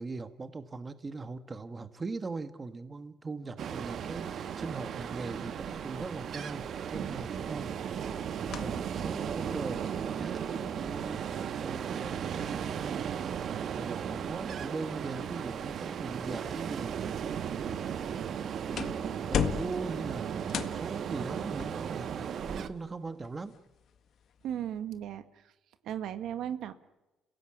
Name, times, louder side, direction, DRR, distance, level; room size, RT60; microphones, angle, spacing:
voice 1, 0.0-6.6 6.9-7.7 8.6-13.0 13.6-17.2 17.6-18.2 18.7-23.6, right 3 dB, 25° right, 11 dB, 1.4 m, -40 dB
Ocean, 3.6-22.7, right 8 dB, 55° right, 1.3 m, -36 dB
sound 1, 8.0-24.8, left 8 dB, 60° left, 1.6 m, -42 dB
voice 2, 24.4-25.5 25.8-26.7, right 10 dB, 75° right, 10 dB, 1.7 m, -36 dB
29.5 x 17.0 x 8.7 m, 1.0 s
cardioid pair, 100°, 0 cm